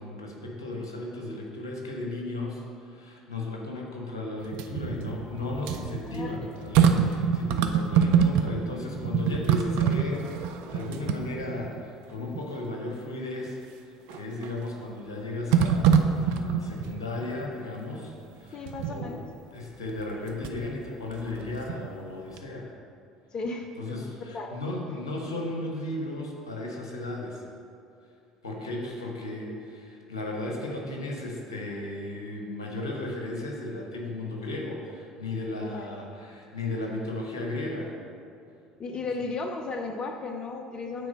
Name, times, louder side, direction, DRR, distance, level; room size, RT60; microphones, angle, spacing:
voice 1, 0.0-19.2 19.5-22.7 23.8-27.4 28.4-37.9, left 2 dB, 85° left, -1 dB, 1.1 m, -35 dB
sound 1, 4.4-8.7 9.0-11.8 12.3-12.4 14.1-14.6 15.5-17.0 18.7-19.1 20.0-20.7 21.1-22.1 22.4-22.5, right 7 dB, 65° right, 0.5 m, -25 dB
voice 2, 6.1-6.5 18.5-19.3 23.3-24.6 35.6-35.9 38.8-41.1, left 3 dB, 35° left, 5 dB, 0.6 m, -35 dB
8.3 x 4.3 x 5.2 m, 2.5 s
hypercardioid pair, 60°, 2 cm